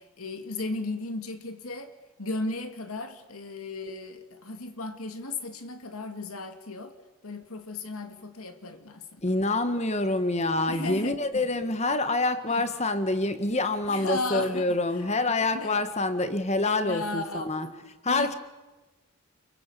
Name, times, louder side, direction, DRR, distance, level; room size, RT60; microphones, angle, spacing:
voice 1, 0.0-1.9 2.2-6.9 7.2-9.0 10.7-11.4 12.5-12.6 13.9-14.7 15.0-15.1 15.5-15.8 16.8-17.5 18.1-18.4, left 2 dB, 75° left, 2.1 m, -35 dB
voice 2, 9.2-17.7 18.0-18.3, left 2 dB, 30° left, 1.7 m, -26 dB
29.5 x 22.5 x 8.5 m
head